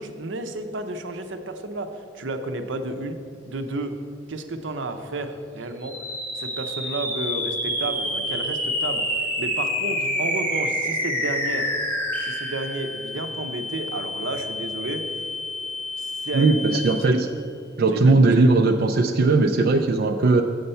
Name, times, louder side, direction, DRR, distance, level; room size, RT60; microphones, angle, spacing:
voice 1, 0.0-3.2 3.4-4.0 4.3-6.0 6.3-11.7 12.2-15.3 16.0-16.8 17.1-17.3 17.9-18.2, right 2 dB, 80° right, 7 dB, 0.7 m, -32 dB
sound 1, 5.8-17.3, left 1 dB, 10° left, 1.2 m, -28 dB
voice 2, 16.3-17.3 17.8-20.4, right 3 dB, 50° right, 5 dB, 0.4 m, -18 dB
7.9 x 6.6 x 5.6 m, 2.3 s
head